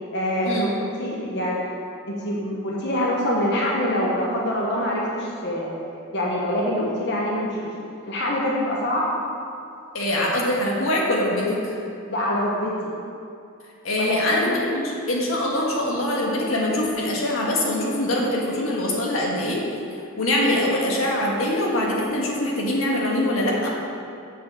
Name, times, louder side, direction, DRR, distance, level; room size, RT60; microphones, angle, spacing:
voice 1, 0.1-1.7 2.1-5.8 6.1-7.7 8.1-9.0 12.1-12.9 14.0-14.2, left 1 dB, 60° left, -4 dB, 1.2 m, -25 dB
voice 2, 9.9-11.7 13.8-19.6 20.2-23.7, left 1 dB, 90° left, -3 dB, 1.7 m, -23 dB
7.4 x 5.7 x 7.3 m, 2.5 s
head